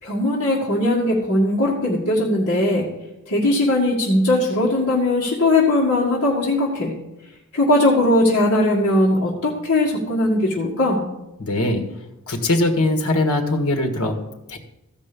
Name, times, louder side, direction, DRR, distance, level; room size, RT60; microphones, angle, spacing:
voice 1, 0.0-2.9 3.3-6.9 7.5-11.0, left 1 dB, 55° left, -6 dB, 1.9 m, -19 dB
voice 2, 11.4-11.9 12.3-14.6, left 2 dB, 75° left, 5 dB, 1.6 m, -21 dB
14.5 x 5.4 x 6.8 m, 0.94 s
head